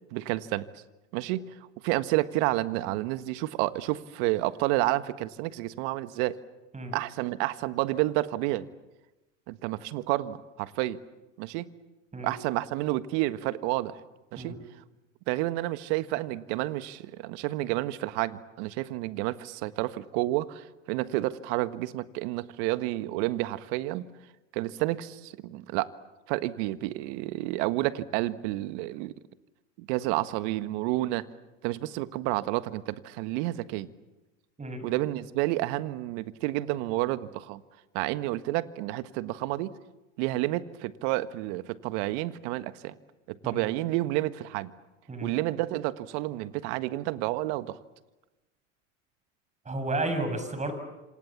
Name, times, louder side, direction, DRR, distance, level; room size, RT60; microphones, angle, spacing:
voice 1, 0.1-0.6 1.1-1.4 1.8-6.4 6.9-8.7 9.5-11.0 11.4-11.7 12.2-14.0 14.3-14.5 15.3-24.0 24.5-25.9 26.3-29.1 29.8-31.2 31.6-33.9 34.8-37.6 37.9-39.7 40.2-42.9 43.3-44.7 45.2-47.8, right 17 dB, 60° right, 13 dB, 1.6 m, -30 dB
voice 2, 49.6-50.7, right 2 dB, 20° right, 8 dB, 6.6 m, -32 dB
28.5 x 27.0 x 7.3 m, 1.0 s
hypercardioid pair, 90°, 38 cm